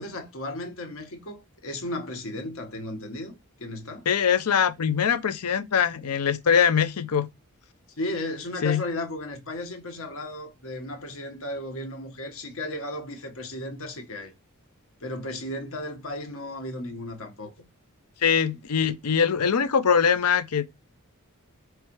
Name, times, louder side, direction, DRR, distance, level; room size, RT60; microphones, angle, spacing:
voice 1, 0.0-3.3 3.6-4.0 8.0-14.3 15.0-17.5, left 1 dB, 65° left, 1.3 m, -35 dB
voice 2, 4.1-7.3 8.6-8.8 18.2-20.7, left 7 dB, 85° left, 0.6 m, -22 dB
4.8 x 3.2 x 3.0 m
head